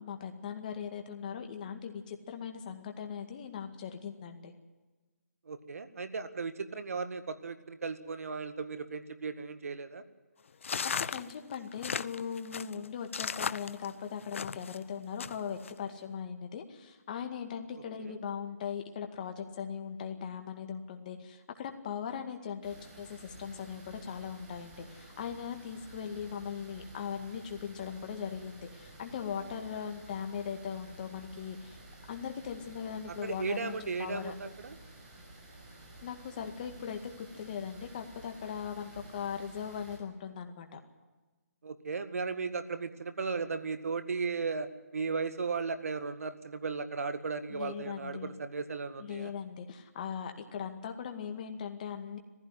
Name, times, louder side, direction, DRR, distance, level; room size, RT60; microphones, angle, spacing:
voice 1, 0.0-4.5 10.8-31.8 32.1-34.3 36.0-40.8 47.5-48.3 49.0-52.2, left 7 dB, 30° left, 5 dB, 2.1 m, -39 dB
voice 2, 5.5-10.0 18.0-18.1 33.2-34.8 41.6-44.7 44.9-49.3, right 4 dB, 65° right, 11 dB, 1.9 m, -36 dB
sound 1, 10.6-14.8 15.2-15.7, left 6 dB, 55° left, 0.6 m, -36 dB
sound 2, 22.6-40.0, right 2 dB, 30° right, 5.3 m, -52 dB
18.0 x 15.5 x 9.9 m, 1.2 s
hypercardioid pair, 165°, 8 cm